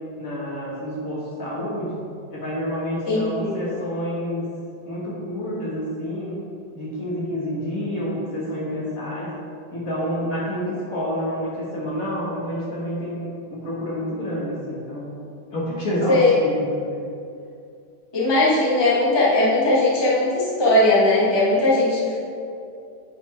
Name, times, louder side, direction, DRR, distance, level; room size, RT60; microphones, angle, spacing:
voice 1, 0.2-2.0 2.3-4.5 4.8-6.4 6.7-9.3 9.7-15.1 15.5-17.1, equal, 45° left, -6 dB, 1.7 m, -28 dB
voice 2, 3.0-3.6 16.1-16.3 18.1-22.2, left 2 dB, 15° left, -7 dB, 1.2 m, -19 dB
9.3 x 4.5 x 4.1 m, 2.5 s
omnidirectional pair, 2.3 m